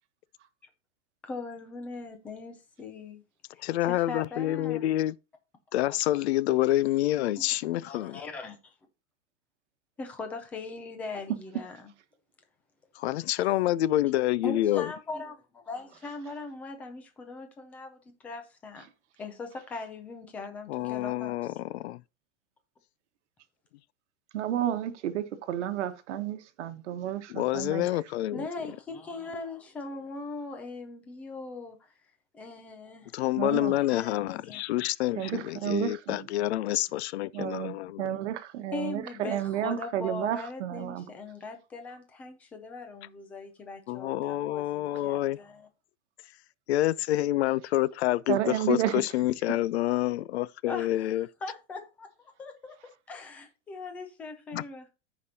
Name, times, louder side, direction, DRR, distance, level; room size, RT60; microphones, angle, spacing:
voice 1, 1.2-3.2 3.8-5.0 7.9-8.8 10.0-11.9 14.4-18.9 19.2-21.6 28.3-31.9 32.3-33.1 33.5-34.8 35.2-35.5 38.7-45.7 50.6-52.1 52.4-52.8 53.1-54.9, left 3 dB, 5° left, 0.4 m, -40 dB
voice 2, 3.6-5.2 5.7-8.2 13.0-14.9 20.7-22.0 27.3-28.4 33.1-38.0 43.9-45.4 46.7-51.3 54.5-54.6, left 15 dB, 60° left, 0.5 m, -27 dB
voice 3, 24.3-27.9 33.4-33.7 35.2-36.3 37.3-41.1 48.3-49.0, right 11 dB, 65° right, 1.3 m, -31 dB
14.5 x 5.1 x 2.8 m
supercardioid pair, 165°, 37 cm